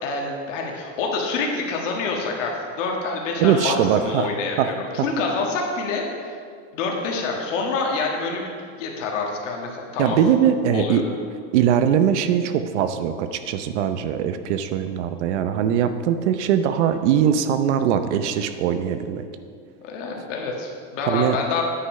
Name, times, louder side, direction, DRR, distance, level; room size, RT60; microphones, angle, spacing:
voice 1, 0.0-6.3 6.7-10.2 10.7-11.0 19.8-21.6, left 3 dB, 75° left, 0 dB, 1.7 m, -27 dB
voice 2, 3.4-4.7 5.0-5.1 10.0-11.0 11.5-19.3 21.1-21.4, right 9 dB, 65° right, 10 dB, 0.7 m, -21 dB
9.8 x 5.9 x 5.5 m, 2.1 s
supercardioid pair, 170°, 37 cm